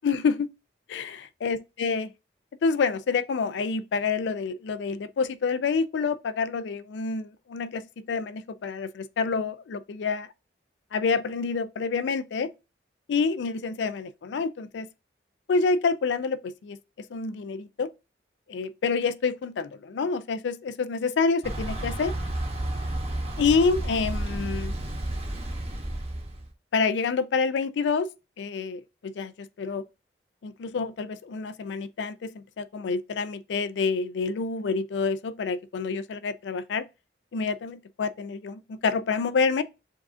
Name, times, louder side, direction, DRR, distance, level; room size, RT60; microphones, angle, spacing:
voice 1, 0.0-0.5 0.9-2.1 2.6-10.3 10.9-12.5 13.1-14.9 15.5-17.9 18.5-22.1 23.4-24.8 26.7-28.1 28.4-29.8 30.4-36.9 37.3-39.6, left 4 dB, 70° left, 0.3 m, -28 dB
Thunder / Bicycle, 21.4-26.5, right 1 dB, 35° right, 0.8 m, -31 dB
7.1 x 2.4 x 2.5 m
head